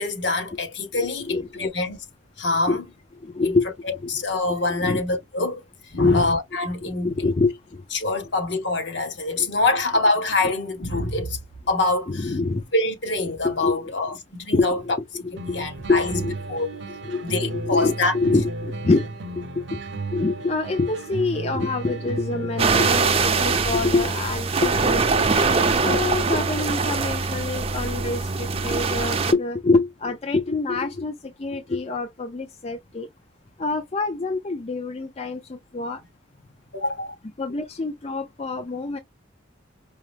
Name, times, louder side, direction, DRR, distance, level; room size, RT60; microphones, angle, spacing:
voice 1, 0.0-2.0 2.4-2.8 3.4-3.6 3.8-7.3 7.9-11.4 11.7-12.4 12.7-14.8 15.5-16.2 16.5-16.7 17.2-18.1 36.7-37.1, left 2 dB, 65° left, 1.3 m, -25 dB
voice 2, 1.0-1.6 2.7-2.8 3.2-3.7 4.0-4.1 4.8-5.0 6.0-6.3 6.8-7.8 9.4-9.5 10.4-10.5 11.0-11.1 12.1-12.6 13.4-13.9 14.5-15.0 15.2-16.4 17.0-19.1 19.4-19.8 20.1-25.3 25.7-33.1 33.6-36.0 37.4-39.0, left 3 dB, 35° left, 0.5 m, -26 dB
sound 1, 15.4-23.3, right 2 dB, 70° right, 0.8 m, -33 dB
sound 2, 22.6-29.3, right 4 dB, 30° right, 0.6 m, -22 dB
4.8 x 2.0 x 3.2 m
head